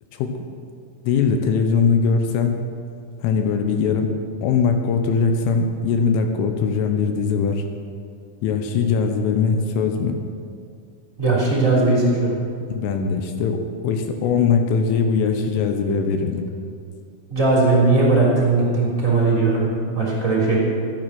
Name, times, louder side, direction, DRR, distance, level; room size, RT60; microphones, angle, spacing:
voice 1, 0.1-0.4 1.0-2.6 3.2-4.1 4.4-7.6 8.4-10.2 12.7-16.5, left 5 dB, 80° left, 5 dB, 3.3 m, -21 dB
voice 2, 11.2-12.3 17.3-20.6, right 3 dB, 20° right, -5 dB, 2.7 m, -18 dB
13.5 x 11.0 x 6.0 m, 2.2 s
omnidirectional pair, 5.9 m